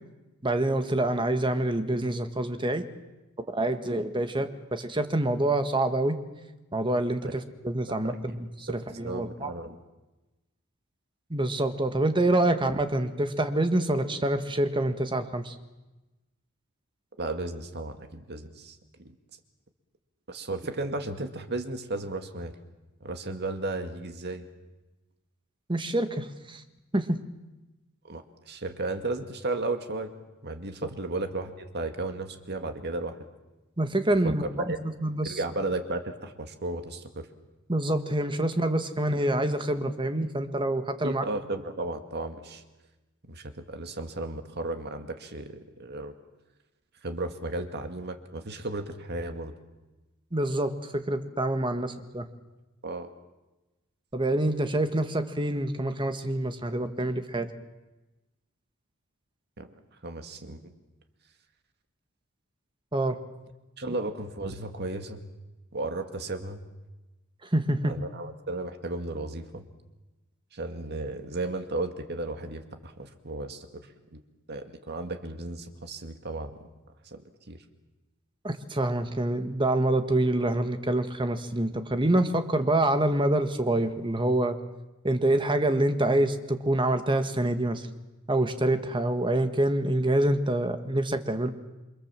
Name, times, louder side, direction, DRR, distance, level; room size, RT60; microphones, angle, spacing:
voice 1, 0.4-2.8 3.5-6.2 6.7-8.1 8.7-9.5 11.3-15.5 25.7-26.6 26.9-27.2 33.8-34.7 35.0-35.4 37.7-41.2 50.3-52.3 54.1-57.5 62.9-63.2 63.9-64.0 67.5-67.9 78.4-84.6 85.0-87.8 88.3-91.5, right 1 dB, 25° right, 8 dB, 1.6 m, -26 dB
voice 2, 7.9-8.2 8.7-9.8 17.2-19.2 20.3-22.6 23.0-24.4 28.0-30.1 30.4-33.2 34.2-34.3 34.7-34.8 35.2-37.3 41.0-42.6 43.3-46.1 47.0-49.5 51.8-51.9 52.8-53.1 59.6-59.7 60.0-60.6 63.8-65.2 65.7-66.6 67.8-69.7 70.5-73.7 74.1-74.2 74.5-76.6 77.0-77.6, right 2 dB, 50° right, 6 dB, 2.1 m, -34 dB
28.5 x 24.5 x 7.6 m, 1.1 s
head